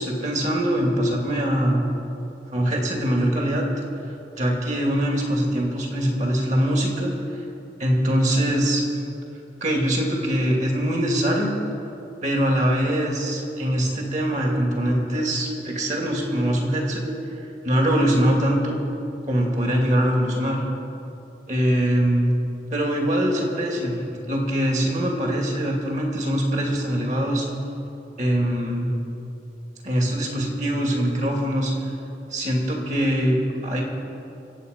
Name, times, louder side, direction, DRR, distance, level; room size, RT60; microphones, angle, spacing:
voice 1, 0.0-1.8 2.5-3.6 4.4-7.1 7.8-8.8 9.6-11.5 12.2-17.0 17.6-18.8 19.3-20.6 21.5-22.3 22.7-24.0 24.3-27.5 28.2-28.9 29.8-31.7 32.3-33.8, equal, 45° right, 0 dB, 2.7 m, -22 dB
25.5 x 8.6 x 5.5 m, 2.8 s
head